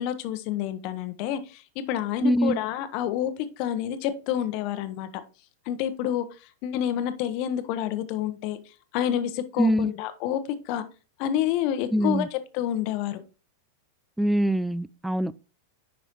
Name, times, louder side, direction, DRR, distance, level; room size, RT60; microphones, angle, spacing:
voice 1, 0.0-5.1 5.7-6.3 6.6-8.6 8.9-10.8 11.2-13.2, left 10 dB, 45° left, 1.0 m, -28 dB
voice 2, 2.2-2.6 9.6-9.9 11.9-12.3 14.2-15.4, equal, 5° right, 0.4 m, -23 dB
9.9 x 5.4 x 3.1 m
figure-of-eight pair, 90°, 0 cm